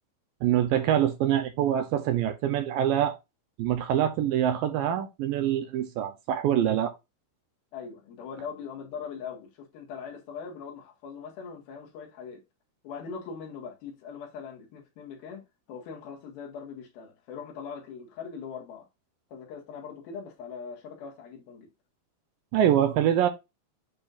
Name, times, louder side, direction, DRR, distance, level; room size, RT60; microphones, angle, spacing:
voice 1, 0.4-3.2 3.6-6.9 22.5-23.3, right 10 dB, 80° right, 2.2 m, -25 dB
voice 2, 7.7-12.4 12.8-18.9 19.3-21.7, left 6 dB, 75° left, 3.5 m, -41 dB
8.6 x 5.3 x 2.5 m
omnidirectional pair, 4.4 m